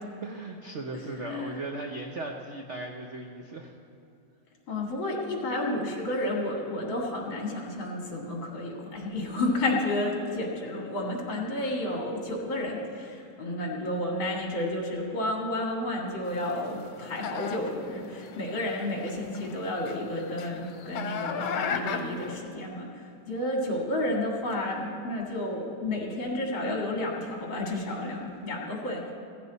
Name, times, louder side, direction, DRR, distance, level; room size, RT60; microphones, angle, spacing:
voice 1, 0.0-3.7, right 2 dB, 60° right, 2 dB, 0.7 m, -38 dB
voice 2, 1.2-1.6 4.7-29.1, left 1 dB, 65° left, -1 dB, 2.9 m, -31 dB
sound 1, 16.2-22.4, left 6 dB, 85° left, 1.7 m, -37 dB
16.0 x 15.0 x 4.1 m, 2.5 s
omnidirectional pair, 2.3 m